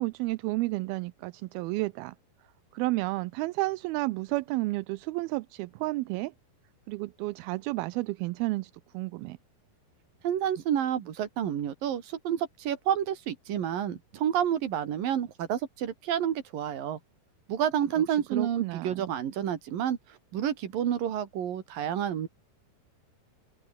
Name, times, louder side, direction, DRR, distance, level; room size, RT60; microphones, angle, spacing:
voice 1, 0.0-2.2 2.7-6.3 6.9-9.4 18.3-19.1, right 21 dB, 80° right, 2.4 m, -31 dB
voice 2, 10.2-17.0 17.5-22.3, right 9 dB, 60° right, 3.7 m, -29 dB
open air
omnidirectional pair, 4.6 m